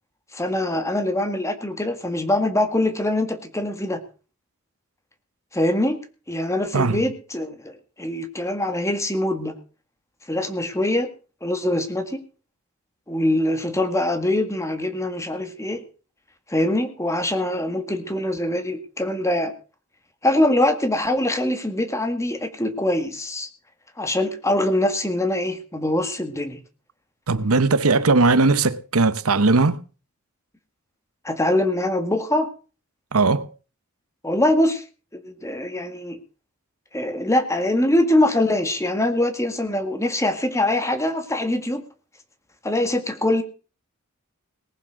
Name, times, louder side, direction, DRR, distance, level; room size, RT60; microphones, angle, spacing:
voice 1, 0.3-4.0 5.5-6.0 6.3-9.5 10.3-11.1 11.4-12.2 13.1-15.8 16.5-19.5 20.2-23.5 24.0-26.6 31.2-32.5 34.2-34.8 35.1-36.2 36.9-41.8 42.6-43.4, left 1 dB, 15° left, 1.8 m, -23 dB
voice 2, 27.3-29.8 33.1-33.5, right 3 dB, 90° right, 1.0 m, -18 dB
19.0 x 7.5 x 6.4 m
head